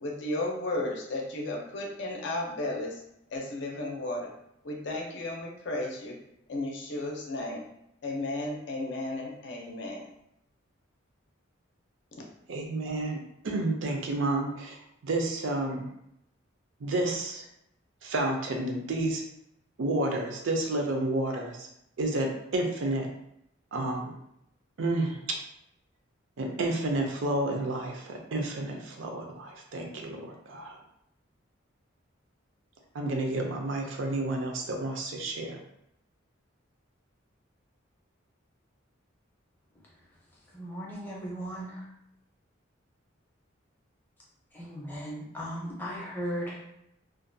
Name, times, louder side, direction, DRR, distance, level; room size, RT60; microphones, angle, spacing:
voice 1, 0.0-3.0 3.3-4.3 4.6-6.2 6.5-7.6 8.0-10.1 12.1-12.2, left 2 dB, 60° left, 0 dB, 0.5 m, -34 dB
voice 2, 12.5-15.9 16.8-17.5 18.0-19.2 19.8-21.7 22.0-23.1 23.7-24.2 24.8-25.4 26.4-30.8 32.9-35.6, right 2 dB, 70° right, 2 dB, 0.5 m, -30 dB
voice 3, 40.5-41.8 44.5-46.7, equal, 10° left, -5 dB, 0.6 m, -37 dB
2.5 x 2.2 x 2.6 m, 0.78 s
head